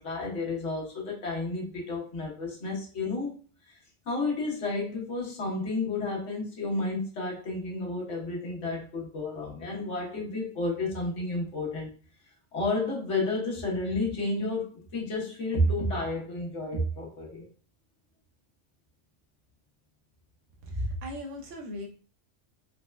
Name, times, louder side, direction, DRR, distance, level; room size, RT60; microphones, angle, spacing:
voice 1, 0.0-3.3 3.7-3.8 4.1-11.9 12.5-17.5, left 2 dB, 80° left, -2 dB, 1.4 m, -31 dB
voice 2, 20.6-21.9, equal, 85° right, 1 dB, 1.1 m, -35 dB
4.1 x 2.2 x 2.2 m, 0.39 s
omnidirectional pair, 1.2 m